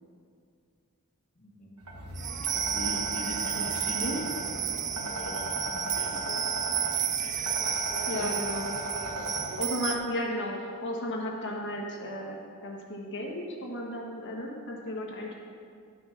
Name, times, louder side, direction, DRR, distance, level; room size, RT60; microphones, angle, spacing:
voice 1, 1.3-1.8 2.5-4.4 4.9-6.3 8.2-8.3, equal, 35° left, -5 dB, 1.3 m, -41 dB
sound 1, 1.8-9.6, right 2 dB, 75° right, 1.3 m, -36 dB
sound 2, 2.2-10.0, right 9 dB, 35° right, 0.5 m, -32 dB
voice 2, 3.6-4.2 6.3-6.4 8.1-8.7 9.6-15.4, left 1 dB, 55° left, -1 dB, 1.5 m, -34 dB
11.0 x 5.7 x 6.1 m, 2.3 s
head